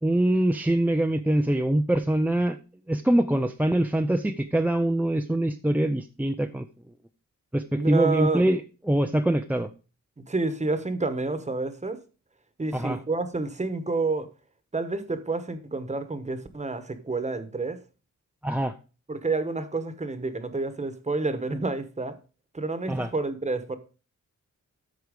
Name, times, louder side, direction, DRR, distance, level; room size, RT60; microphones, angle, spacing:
voice 1, 0.0-2.6 2.9-6.7 7.5-8.6 8.9-9.7 12.7-13.0 18.4-18.7 22.9-23.1, right 1 dB, 5° right, 0.5 m, -24 dB
voice 2, 7.7-8.5 10.2-12.0 12.6-14.3 14.7-17.8 19.1-22.2 22.5-23.8, right 3 dB, 20° right, 1.1 m, -29 dB
13.0 x 4.7 x 5.1 m
wide cardioid pair, 135°, 31 cm